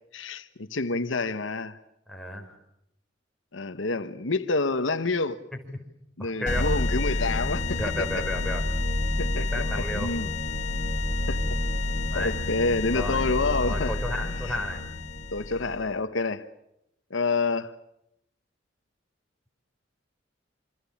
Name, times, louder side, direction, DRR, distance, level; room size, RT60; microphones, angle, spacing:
voice 1, 0.1-1.8 3.5-5.4 6.2-8.0 9.2-9.5 9.9-10.3 11.3-11.6 12.1-14.5 15.3-16.5 17.1-17.7, left 3 dB, 80° left, 1.2 m, -28 dB
voice 2, 2.1-2.6 5.7-5.8 6.2-6.7 7.7-8.6 9.4-10.1 12.1-12.3 12.9-13.2 13.6-14.8, left 1 dB, ahead, 4.6 m, -33 dB
sound 1, 6.5-15.9, left 2 dB, 40° left, 3.6 m, -29 dB
26.5 x 26.0 x 7.3 m
head